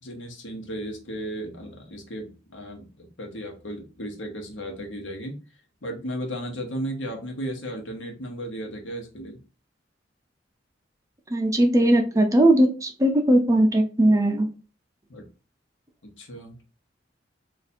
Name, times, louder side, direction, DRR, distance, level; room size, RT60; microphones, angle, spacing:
voice 1, 0.0-5.4 5.8-9.4 15.1-15.3 16.0-16.6, right 1 dB, 80° left, 3 dB, 1.0 m, -35 dB
voice 2, 11.3-14.5, right 1 dB, 15° right, 4 dB, 0.5 m, -19 dB
2.6 x 2.5 x 4.2 m, 0.33 s
head